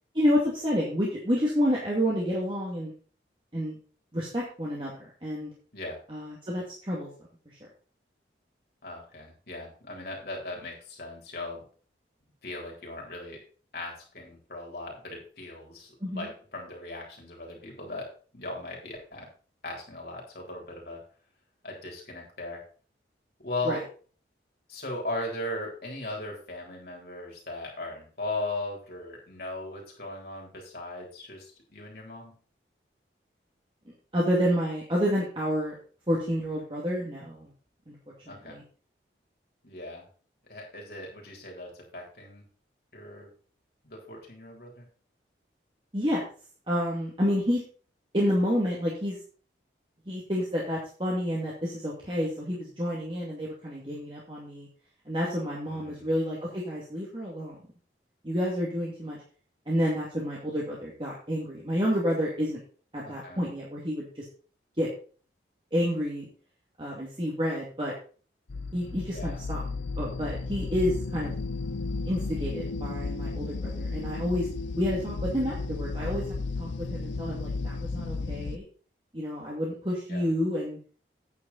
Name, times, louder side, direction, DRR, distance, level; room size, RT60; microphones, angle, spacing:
voice 1, 0.1-2.9 3.5-3.8 4.1-5.5 6.1-7.1 7.5-7.6 16.0-16.3 23.6-23.8 34.1-35.8 36.1-37.5 37.9-38.0 38.3-38.6 45.9-46.2 46.7-47.6 48.1-49.2 50.1-54.7 55.1-57.6 58.2-59.2 59.7-62.6 62.9-64.2 64.8-64.9 65.7-66.3 66.8-67.9 68.7-69.6 70.0-71.3 72.1-74.5 74.8-76.2 76.6-78.6 79.1-80.8, equal, 30° right, -4 dB, 2.3 m, -29 dB
voice 2, 8.8-11.6 12.4-13.4 13.7-19.3 19.6-21.0 21.6-22.6 23.4-23.8 24.7-32.3 38.3-38.6 39.6-40.0 40.4-42.4 42.9-43.3 43.8-44.9 55.7-56.1 63.0-63.4 69.1-69.4 80.1-80.3, left 2 dB, 55° left, -1 dB, 3.9 m, -38 dB
sound 1, 68.5-78.6, left 3 dB, 85° left, 0.6 m, -33 dB
9.5 x 8.7 x 4.2 m, 0.40 s
head